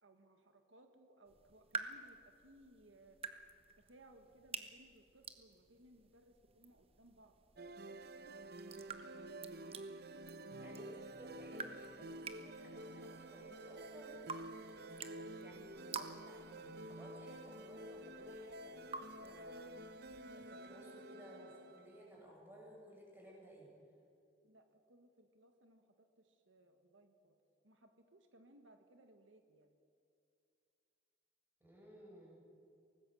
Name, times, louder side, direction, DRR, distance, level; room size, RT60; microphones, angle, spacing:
voice 1, 0.0-3.2 3.8-7.3 14.0-14.3 24.4-27.4 27.6-29.8, right 1 dB, 85° right, 6 dB, 1.7 m, -64 dB
sound 1, 1.3-20.2, right 5 dB, 30° right, 1.3 m, -51 dB
sound 2, 7.6-22.1, right 1 dB, 55° right, 1.0 m, -50 dB
voice 2, 10.6-18.9 19.2-23.7 31.6-32.4, right 1 dB, 10° right, -3 dB, 6.9 m, -57 dB
24.0 x 19.0 x 7.8 m, 2.5 s
head